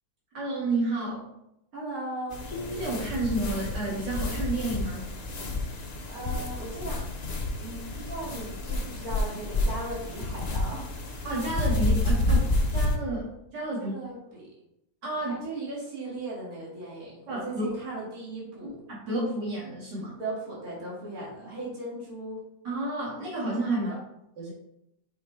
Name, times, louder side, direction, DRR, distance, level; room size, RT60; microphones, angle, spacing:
voice 1, 0.3-1.3 2.7-5.1 11.2-13.9 15.0-15.5 17.3-17.7 18.6-20.1 22.6-23.9 24.4-24.5, right 2 dB, 80° right, -6 dB, 2.6 m, -31 dB
voice 2, 1.7-2.4 6.0-7.0 7.6-10.9 13.8-14.5 15.1-18.8 20.2-22.4 23.7-24.0, right 2 dB, 55° right, -5 dB, 2.6 m, -37 dB
sound 1, 2.3-13.0, left 2 dB, 45° left, 0.5 m, -29 dB
6.8 x 5.3 x 3.2 m, 0.81 s
omnidirectional pair, 1.8 m